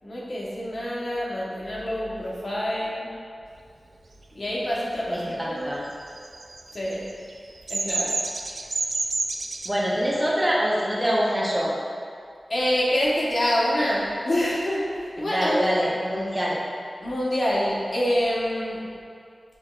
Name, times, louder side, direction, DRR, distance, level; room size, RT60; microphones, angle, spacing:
voice 1, 0.0-3.1 4.3-5.7 6.7-7.1 7.7-8.2 12.5-15.6 17.0-18.8, equal, 55° left, -6 dB, 1.1 m, -26 dB
voice 2, 5.1-5.8 9.6-11.7 15.2-16.6, equal, 15° right, -5 dB, 0.9 m, -25 dB
Bird vocalization bird call bird song, 6.0-9.7, right 3 dB, 70° right, 0.3 m, -29 dB
6.7 x 3.0 x 2.4 m, 2.3 s
wide cardioid pair, 65°, 0 cm